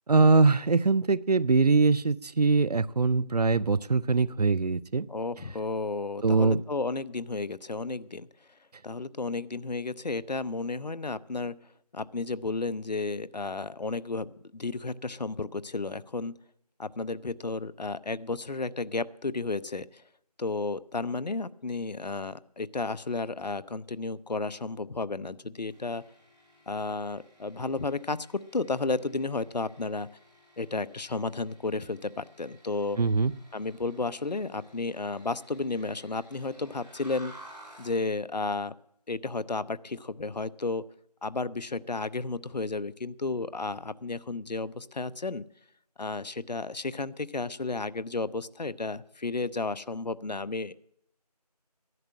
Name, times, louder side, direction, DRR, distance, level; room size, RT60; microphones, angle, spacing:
voice 1, 0.1-5.1 6.2-6.6 33.0-33.3, right 3 dB, 70° right, 22 dB, 0.5 m, -22 dB
voice 2, 5.1-8.3 8.8-11.6 11.9-16.3 16.8-20.0 20.4-26.0 26.7-30.1 30.6-33.0 33.5-37.3 37.8-38.7 39.1-40.8 41.2-45.4 46.0-50.7, left 3 dB, 90° left, 17 dB, 0.6 m, -32 dB
sound 1, 25.7-38.0, right 1 dB, ahead, 2.9 m, -55 dB
11.5 x 11.0 x 7.6 m, 0.73 s
figure-of-eight pair, 175°, 21 cm